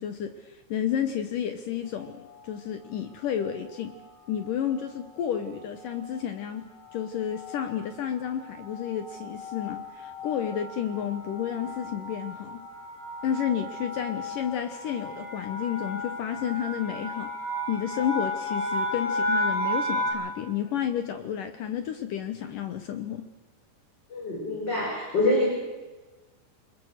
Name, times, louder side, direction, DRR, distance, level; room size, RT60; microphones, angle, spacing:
voice 1, 0.0-2.2 2.4-4.0 4.3-6.6 6.9-12.6 13.2-17.3 17.7-23.3, left 9 dB, 70° left, 8 dB, 2.1 m, -31 dB
sound 1, 2.0-2.4 3.2-3.6 3.9-4.1 4.3-20.1, left 1 dB, 50° left, 9.6 m, -34 dB
voice 2, 24.1-25.5, left 2 dB, 25° left, -1 dB, 4.8 m, -25 dB
28.0 x 21.5 x 6.6 m, 1.2 s
omnidirectional pair, 5.1 m